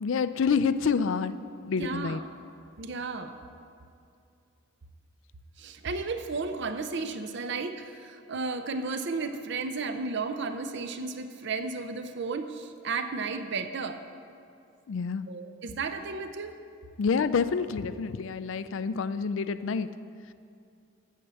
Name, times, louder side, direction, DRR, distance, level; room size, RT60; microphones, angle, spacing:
voice 1, 0.0-1.4 1.6-2.2 14.9-15.3 17.0-19.9, left 5 dB, 65° left, 13 dB, 0.4 m, -28 dB
voice 2, 1.7-2.3 2.8-3.3 5.6-14.0 15.3-16.6, right 4 dB, 60° right, 8 dB, 0.6 m, -33 dB
8.6 x 7.5 x 7.0 m, 2.5 s
head